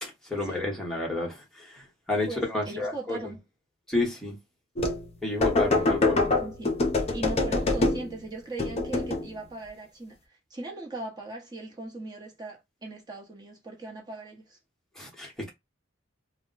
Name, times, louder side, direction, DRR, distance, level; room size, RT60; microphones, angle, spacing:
voice 1, 0.0-3.2 3.9-4.4 5.2-6.2 15.0-15.5, left 2 dB, ahead, 1.0 m, -31 dB
voice 2, 2.3-3.4 5.8-6.7 7.0-14.6, right 2 dB, 20° right, 0.9 m, -39 dB
sound 1, 4.8-5.1 5.4-8.2 8.6-9.3, left 2 dB, 30° left, 0.5 m, -25 dB
2.2 x 2.1 x 3.8 m
head